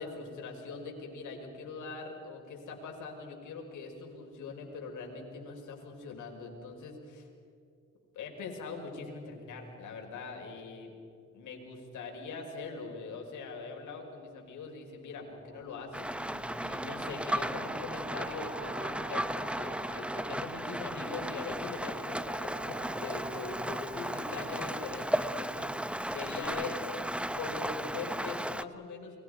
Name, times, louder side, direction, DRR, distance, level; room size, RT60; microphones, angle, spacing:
voice 1, 0.0-7.3 8.1-10.9 11.3-27.0 27.3-29.2, left 4 dB, 75° left, 1 dB, 5.6 m, -42 dB
sound 1, 15.3-26.4, right 2 dB, 25° right, 5.0 m, -48 dB
Rain, 15.9-28.6, right 1 dB, 5° right, 0.8 m, -35 dB
30.0 x 23.5 x 5.2 m, 2.6 s
cardioid pair, 90°, 30 cm